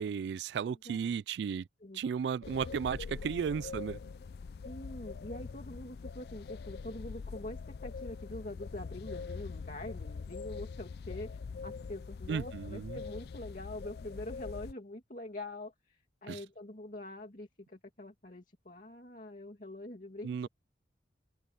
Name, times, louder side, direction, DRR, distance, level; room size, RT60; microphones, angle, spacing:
voice 1, 0.0-1.7 1.9-4.0 12.3-13.0 16.3-16.4 20.2-20.5, right 6 dB, 75° right, 0.3 m, -34 dB
voice 2, 0.6-1.1 1.8-2.0 2.4-2.6 3.4-3.5 4.6-20.5, left 1 dB, 45° left, 2.5 m, -45 dB
sound 1, 2.4-14.7, left 5 dB, 60° left, 0.4 m, -43 dB
head